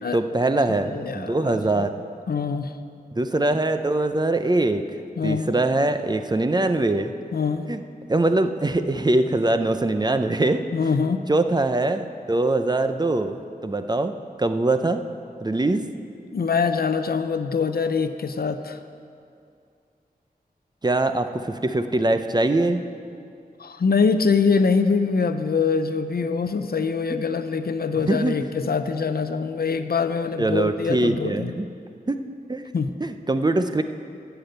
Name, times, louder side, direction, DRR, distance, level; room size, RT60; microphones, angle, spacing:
voice 1, 0.1-1.9 3.2-4.8 5.2-7.1 7.7-7.8 8.1-10.6 11.3-14.1 14.4-15.0 15.4-15.8 20.8-22.8 27.1-27.2 28.0-28.5 30.4-31.7 32.1-32.2 32.5-32.7 33.0-33.8, right 2 dB, 25° right, 8 dB, 0.6 m, -22 dB
voice 2, 0.7-1.9 2.3-2.7 5.2-5.5 7.3-7.7 10.7-11.3 16.3-18.8 23.6-31.5 32.7-32.9, left 5 dB, 75° left, 9 dB, 0.6 m, -24 dB
11.5 x 6.9 x 8.0 m, 2.4 s
wide cardioid pair, 85°, 16 cm